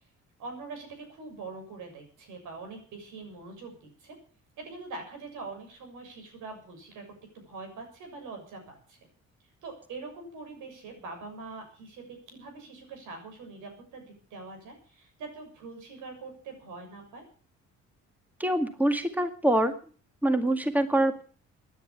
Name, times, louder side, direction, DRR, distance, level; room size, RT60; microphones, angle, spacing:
voice 1, 0.4-4.2 4.6-7.0 7.3-9.0 9.6-17.2, right 3 dB, 85° right, 4 dB, 7.0 m, -43 dB
voice 2, 18.4-19.7 20.2-21.2, right 1 dB, 5° right, 7 dB, 2.0 m, -25 dB
16.5 x 10.0 x 7.1 m, 0.42 s
cardioid pair, 90°, 30 cm